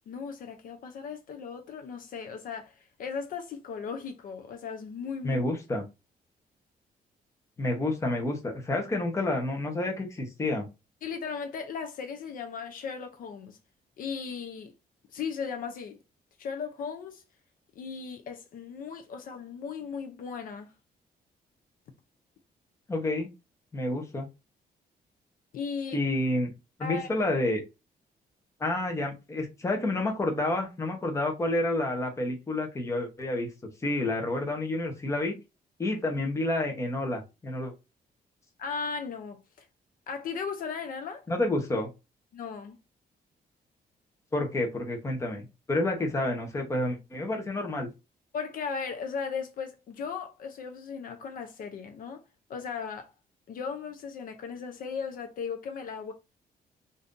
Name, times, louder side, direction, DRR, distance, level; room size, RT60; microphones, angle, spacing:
voice 1, 0.1-5.4 11.0-13.6 14.0-14.7 15.1-16.0 16.4-17.2 17.8-20.7 25.5-26.0 26.8-27.1 38.6-39.7 40.1-41.2 42.3-42.8 48.3-52.2 52.5-53.1 53.5-56.1, left 6 dB, 60° left, 0.5 m, -37 dB
voice 2, 5.2-5.8 7.6-10.6 22.9-23.3 23.7-24.3 25.9-26.5 26.8-27.6 28.6-33.5 33.8-35.3 35.8-37.7 41.3-41.9 44.3-47.9, left 2 dB, 20° left, 0.8 m, -29 dB
2.6 x 2.5 x 3.6 m
cardioid pair, 165°, 16 cm